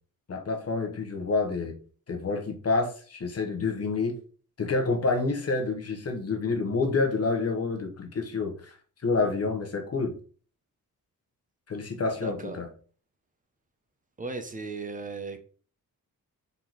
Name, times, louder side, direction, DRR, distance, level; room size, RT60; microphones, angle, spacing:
voice 1, 0.3-1.7 2.1-4.1 4.6-8.8 9.0-10.2 11.7-12.7, left 3 dB, 45° left, 3 dB, 1.0 m, -28 dB
voice 2, 12.2-12.6 14.2-15.4, right 3 dB, 25° right, 8 dB, 0.6 m, -36 dB
4.0 x 3.6 x 3.0 m, 0.42 s
cardioid pair, 110°, 35 cm